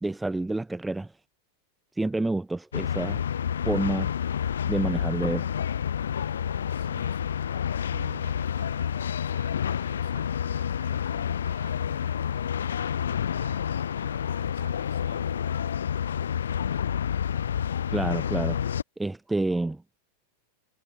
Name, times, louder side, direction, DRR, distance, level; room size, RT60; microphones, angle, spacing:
voice 1, 0.0-1.1 2.0-3.2 3.6-4.1 4.7-5.5 17.9-18.6 19.0-19.8, right 2 dB, 5° right, 0.7 m, -28 dB
sound 1, 2.7-18.8, left 8 dB, 65° left, 0.3 m, -29 dB
voice 2, 6.7-7.4 7.8-15.6, right 10 dB, 60° right, 7.3 m, -52 dB
figure-of-eight pair, 90°, 0 cm